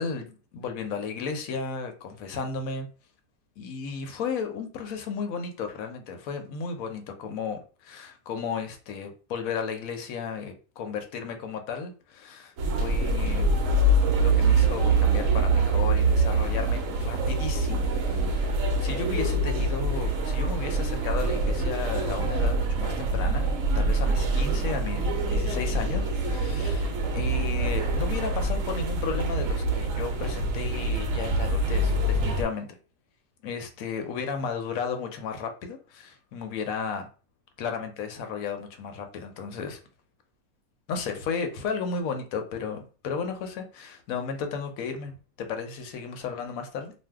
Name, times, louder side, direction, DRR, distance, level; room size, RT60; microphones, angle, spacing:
voice 1, 0.0-2.9 3.6-13.5 14.2-23.5 23.7-32.8 33.4-37.1 37.6-39.8 40.9-46.9, left 5 dB, 65° left, 1.0 m, -34 dB
sound 1, 12.6-32.4, right 2 dB, 65° right, 0.8 m, -25 dB
2.6 x 2.2 x 3.4 m
omnidirectional pair, 1.7 m